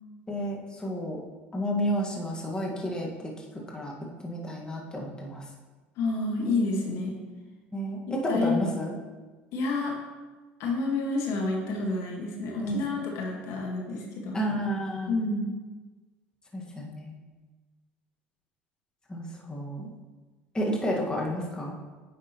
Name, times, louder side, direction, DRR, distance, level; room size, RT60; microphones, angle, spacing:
voice 1, 0.3-1.2 1.5-3.3 3.7-3.9 4.2-5.4 7.7-8.9 12.6-12.8 14.3-15.1 16.5-17.1 19.1-19.9 20.5-21.8, equal, 15° left, -2 dB, 1.6 m, -31 dB
voice 2, 6.0-7.1 8.1-8.6 9.5-10.0 10.6-14.4 15.1-15.5, left 3 dB, 60° left, -1 dB, 1.6 m, -29 dB
9.2 x 5.9 x 3.0 m, 1.3 s
hypercardioid pair, 75°, 6 cm